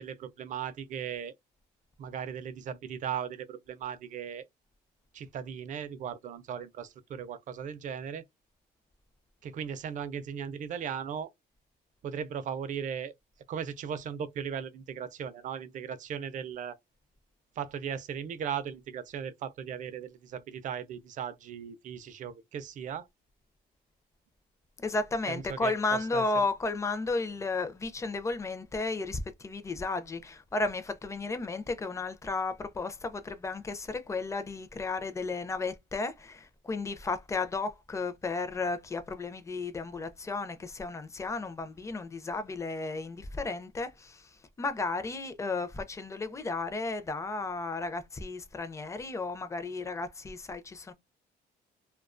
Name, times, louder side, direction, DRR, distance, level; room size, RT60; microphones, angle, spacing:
voice 1, 0.0-1.3 2.0-4.5 5.1-8.2 9.4-11.3 12.0-13.1 13.5-16.8 17.6-23.1 25.3-26.5, right 8 dB, 50° right, 0.4 m, -37 dB
voice 2, 24.8-50.9, left 3 dB, 15° left, 0.4 m, -33 dB
2.3 x 2.2 x 2.4 m
cardioid pair, 110°, 17 cm